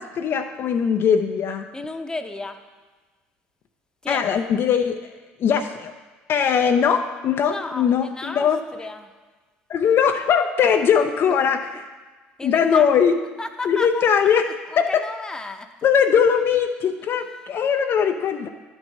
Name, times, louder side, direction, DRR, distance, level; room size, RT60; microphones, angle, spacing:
voice 1, 0.0-1.6 4.1-5.0 5.4-5.9 6.3-8.6 9.7-11.9 12.4-13.1 13.6-14.5 14.8-15.0 15.8-18.5, left 7 dB, 50° left, 5 dB, 0.5 m, -20 dB
voice 2, 1.7-2.6 4.0-4.3 7.4-9.1 10.9-11.1 12.4-12.9 13.4-14.3 14.7-15.7 18.0-18.2, left 2 dB, 15° left, 6 dB, 0.8 m, -33 dB
10.5 x 4.6 x 5.4 m, 1.3 s
hypercardioid pair, 65°, 5 cm